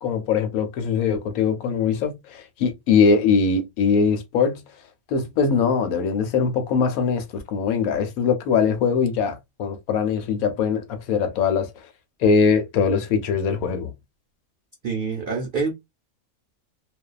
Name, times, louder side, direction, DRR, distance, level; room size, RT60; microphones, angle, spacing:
voice 1, 0.0-4.6 5.1-11.7 12.2-13.9, left 5 dB, 85° left, 1.1 m, -22 dB
voice 2, 14.8-15.7, right 4 dB, 85° right, 0.4 m, -26 dB
2.6 x 2.2 x 2.3 m
omnidirectional pair, 1.5 m